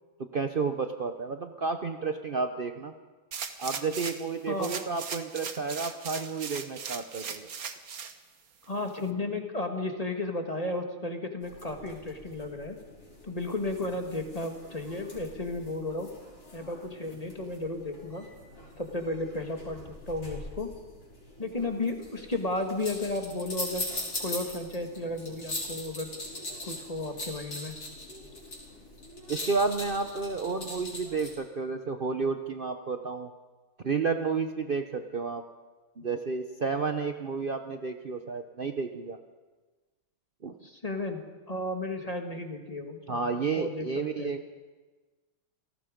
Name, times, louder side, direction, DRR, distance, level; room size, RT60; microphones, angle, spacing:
voice 1, 0.3-2.9 3.6-7.5 29.3-33.3 33.8-35.4 36.0-39.2 40.4-40.5 43.1-44.5, right 4 dB, 70° right, 6 dB, 0.5 m, -31 dB
sound 1, 3.3-4.3 4.6-8.1 8.6-8.7, right 6 dB, 50° right, 1.5 m, -38 dB
voice 2, 8.7-12.8 13.2-16.1 16.5-18.3 18.8-20.7 21.4-23.9 24.2-26.1 26.6-27.8 40.6-43.9 44.2-44.3, left 2 dB, 20° left, 4 dB, 1.8 m, -33 dB
sound 2, 11.4-31.4, left 1 dB, 45° left, 5.5 m, -42 dB
28.5 x 18.5 x 5.2 m, 1.3 s
omnidirectional pair, 2.3 m